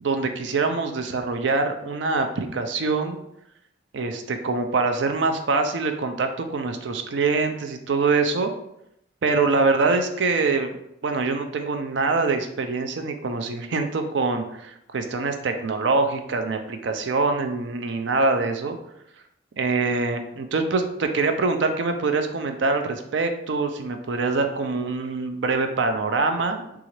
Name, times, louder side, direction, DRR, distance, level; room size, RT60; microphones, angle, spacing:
voice 1, 0.0-3.2 3.9-8.5 9.2-10.8 11.0-18.8 19.6-26.6, right 3 dB, 75° right, 6 dB, 0.5 m, -24 dB
3.9 x 2.4 x 3.0 m, 0.78 s
head